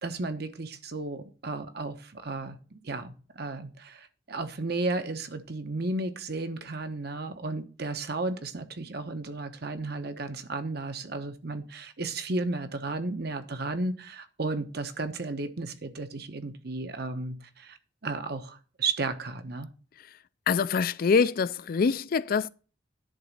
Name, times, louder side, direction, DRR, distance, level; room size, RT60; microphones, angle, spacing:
voice 1, 0.0-17.8 18.0-19.7, right 3 dB, 60° right, 1.1 m, -34 dB
voice 2, 20.5-22.5, left 5 dB, 55° left, 0.4 m, -24 dB
10.5 x 4.0 x 7.4 m
head